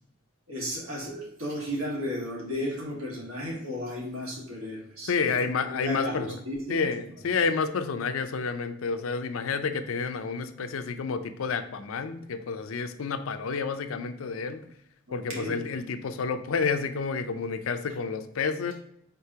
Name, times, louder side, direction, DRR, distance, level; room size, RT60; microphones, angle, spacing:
voice 1, 0.5-6.8 15.1-15.6, left 1 dB, 80° right, -3 dB, 1.7 m, -34 dB
voice 2, 5.0-6.4 6.7-14.7 15.1-18.7, left 5 dB, 75° left, 9 dB, 0.4 m, -30 dB
4.6 x 4.1 x 2.8 m, 0.76 s
head